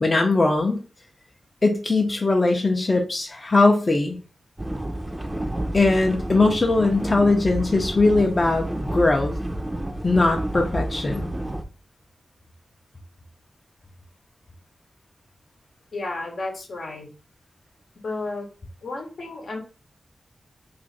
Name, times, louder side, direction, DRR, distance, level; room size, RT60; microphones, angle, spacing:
voice 1, 0.0-0.8 1.6-4.2 5.7-9.3 10.0-11.3, left 2 dB, 35° left, 2 dB, 0.5 m, -20 dB
sound 1, 4.6-11.6, right 1 dB, 15° right, 0.4 m, -30 dB
voice 2, 15.9-17.1 18.0-18.5 18.8-19.6, left 2 dB, 70° left, 2 dB, 0.9 m, -32 dB
2.5 x 2.5 x 4.0 m, 0.37 s
cardioid pair, 65°, 0 cm